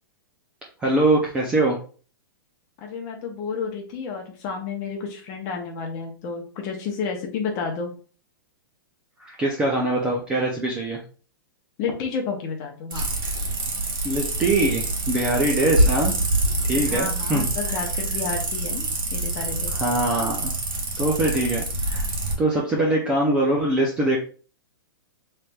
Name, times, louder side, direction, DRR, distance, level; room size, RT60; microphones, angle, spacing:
voice 1, 0.8-1.8 9.2-11.0 14.0-16.2 16.7-17.5 19.8-20.5 21.0-22.0 22.4-24.2, right 2 dB, 10° right, -2 dB, 0.4 m, -23 dB
voice 2, 2.8-7.9 11.8-13.1 16.7-18.8 19.1-19.7, left 5 dB, 25° left, 2 dB, 0.8 m, -31 dB
sound 1, 12.9-22.3, right 2 dB, 70° right, 1.4 m, -25 dB
5.6 x 3.2 x 2.2 m, 0.39 s
hypercardioid pair, 175°, 12 cm